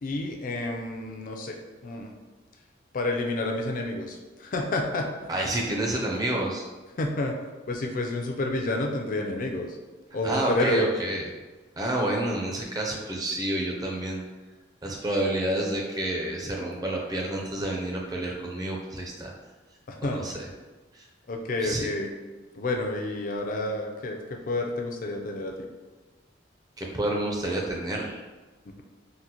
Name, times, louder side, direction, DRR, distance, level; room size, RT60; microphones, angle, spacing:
voice 1, 0.0-1.6 1.8-2.1 2.9-5.3 7.0-7.4 7.7-9.8 10.1-10.9 19.9-20.3 21.3-22.1 22.6-25.7, left 2 dB, 45° left, 3 dB, 0.4 m, -29 dB
voice 2, 5.3-6.6 10.2-11.2 11.8-14.2 14.8-19.3 20.1-20.3 21.6-21.9 26.8-28.2, right 1 dB, 20° right, -1 dB, 0.4 m, -29 dB
3.8 x 2.0 x 2.8 m, 1.2 s
head